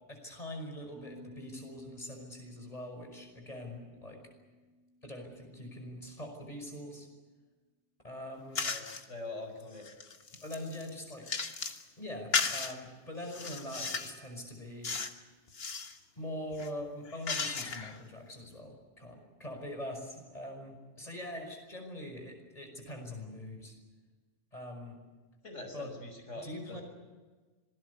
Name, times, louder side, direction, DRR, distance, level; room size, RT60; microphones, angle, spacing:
voice 1, 0.1-4.2 5.0-7.1 8.0-8.7 10.4-11.3 12.0-14.9 16.2-23.7 24.5-25.0 25.7-25.9 26.4-26.8, left 1 dB, 30° left, 3 dB, 5.7 m, -43 dB
Piano, 0.9-6.5, equal, 20° right, 6.1 m, -57 dB
sound 1, 8.5-9.0 9.6-11.8 12.3-12.7 13.3-14.2 14.8-15.2 15.5-16.0 16.5-18.0, left 4 dB, 55° left, 1.7 m, -35 dB
voice 2, 8.6-9.9 25.4-26.8, left 2 dB, 85° left, 4 dB, 5.9 m, -43 dB
26.5 x 20.0 x 8.3 m, 1.3 s
omnidirectional pair, 1.2 m